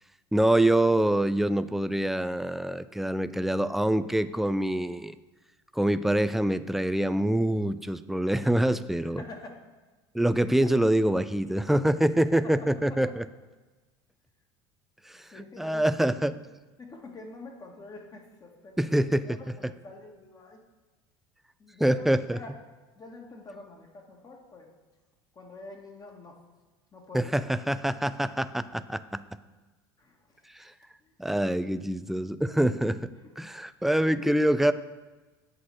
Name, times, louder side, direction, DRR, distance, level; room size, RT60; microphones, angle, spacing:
voice 1, 0.3-5.1 5.8-9.2 10.1-13.2 15.1-15.2 15.6-16.3 18.8-19.2 21.8-22.4 27.1-29.2 31.2-33.1 33.4-34.7, right 1 dB, ahead, 13 dB, 0.4 m, -25 dB
voice 2, 9.0-9.6 12.4-13.1 15.3-16.3 16.8-20.6 21.6-22.6 23.0-24.7 25.3-26.4 26.9-27.4 30.0-30.7 31.0-31.2 33.2-33.3 34.2-34.3, left 2 dB, 30° left, 1 dB, 1.9 m, -47 dB
8.6 x 4.0 x 6.4 m, 1.3 s
hypercardioid pair, 75°, 13 cm